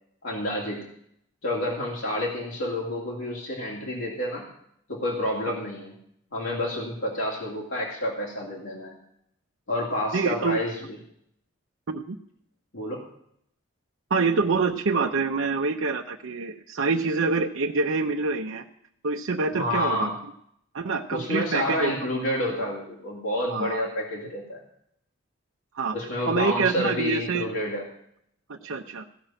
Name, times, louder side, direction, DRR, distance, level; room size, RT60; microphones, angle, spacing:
voice 1, 0.2-0.9 1.4-4.4 4.9-6.0 6.3-8.9 9.7-10.8 12.7-13.0 19.5-20.2 21.1-24.6 25.9-27.9, left 1 dB, 75° left, -4 dB, 2.7 m, -29 dB
voice 2, 10.1-10.6 11.9-12.2 14.1-18.6 19.0-20.1 20.7-21.9 22.6-22.7 23.5-23.8 25.7-25.9 26.3-27.5 28.5-29.1, right 4 dB, 75° right, 1 dB, 0.7 m, -26 dB
16.0 x 5.8 x 8.9 m, 0.71 s
head